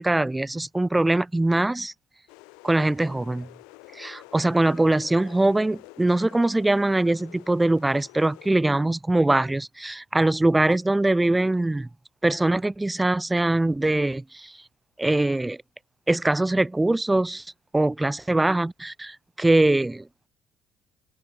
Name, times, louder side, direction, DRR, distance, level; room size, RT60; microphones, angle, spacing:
voice 1, 0.0-1.9 2.6-3.5 4.0-11.9 12.2-14.5 15.0-15.6 16.1-17.4 17.7-20.1, right 2 dB, 15° right, 0.3 m, -22 dB
sound 1, 2.3-8.5, left 31 dB, 65° left, 3.7 m, -49 dB
open air
figure-of-eight pair, 50°, 0 cm